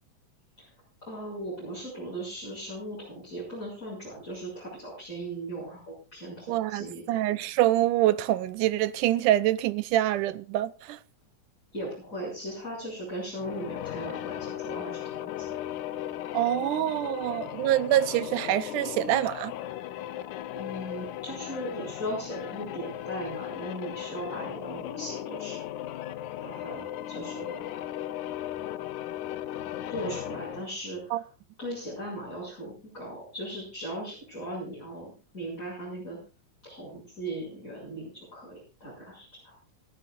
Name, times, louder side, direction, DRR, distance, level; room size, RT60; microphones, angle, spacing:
voice 1, 1.0-7.0 11.7-15.6 20.5-25.6 26.4-27.7 29.9-31.3 31.6-36.2 36.6-39.6, right 1 dB, 25° left, 7.2 m, -38 dB
voice 2, 6.5-11.0 16.3-19.5 31.1-31.2, right 14 dB, 85° right, 2.3 m, -25 dB
sound 1, 13.3-30.8, left 12 dB, 75° left, 2.2 m, -37 dB
28.0 x 10.5 x 2.5 m
omnidirectional pair, 3.6 m